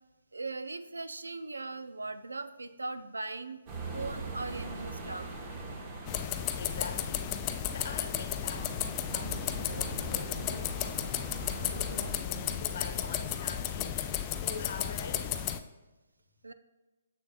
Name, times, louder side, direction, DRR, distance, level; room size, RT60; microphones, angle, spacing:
voice 1, 0.3-3.6 3.9-5.3 16.4-16.5, right 3 dB, 85° right, 11 dB, 0.4 m, -39 dB
sound 1, 3.6-12.1, right 3 dB, 35° right, 1.3 m, -42 dB
sound 2, 6.1-15.6, left 11 dB, 30° left, 0.4 m, -34 dB
voice 2, 6.5-10.8 11.5-15.5, left 4 dB, 55° left, 6 dB, 0.9 m, -44 dB
7.0 x 6.4 x 2.4 m, 1.1 s
figure-of-eight pair, 135°, 0 cm